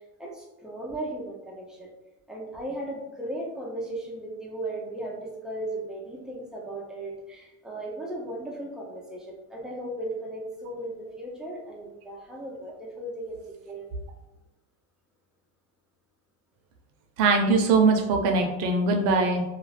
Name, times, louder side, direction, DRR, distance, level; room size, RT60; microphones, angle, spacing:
voice 1, 0.2-1.9 2.3-13.4 13.6-13.9, right 1 dB, ahead, -3 dB, 0.3 m, -36 dB
voice 2, 17.2-19.4, right 3 dB, 70° right, 4 dB, 0.7 m, -21 dB
2.4 x 2.3 x 3.2 m, 1.0 s
cardioid pair, 145°, 37 cm